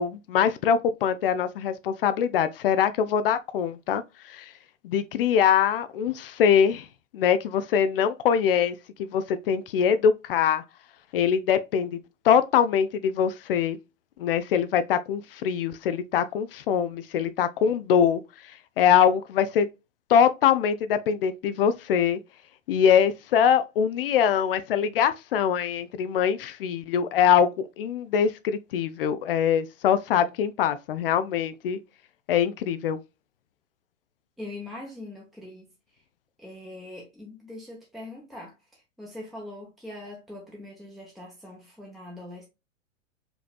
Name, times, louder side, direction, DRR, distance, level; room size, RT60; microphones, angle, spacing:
voice 1, 0.0-4.0 4.3-4.5 4.8-6.9 7.1-10.6 11.1-12.0 12.2-13.8 14.2-18.2 18.8-19.7 20.1-22.2 22.7-31.8 32.3-33.0, left 8 dB, 45° left, 0.5 m, -23 dB
voice 2, 34.4-35.7 36.4-42.4, left 1 dB, ahead, 1.0 m, -42 dB
5.1 x 3.1 x 2.3 m
figure-of-eight pair, 105°, 39 cm